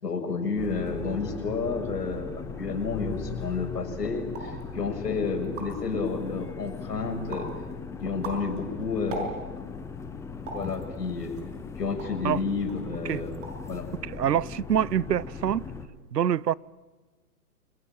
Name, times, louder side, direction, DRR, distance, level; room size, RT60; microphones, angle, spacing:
voice 1, 0.0-7.5 8.0-9.7 10.5-11.4 11.8-13.9, left 4 dB, 85° left, 6.9 m, -31 dB
sound 1, 0.6-15.9, left 5 dB, 5° left, 1.0 m, -39 dB
sound 2, 4.3-4.6 5.1-5.2 5.4-5.9 6.4-6.9 7.3-7.6 8.0-9.7 10.5-10.7 11.4-12.3 12.7-12.9 13.2-13.7 14.0-14.5, right 2 dB, 50° right, 6.4 m, -39 dB
voice 2, 14.0-15.7 16.1-16.5, right 10 dB, 85° right, 0.8 m, -25 dB
29.0 x 21.0 x 9.0 m
hypercardioid pair, 135°, 47 cm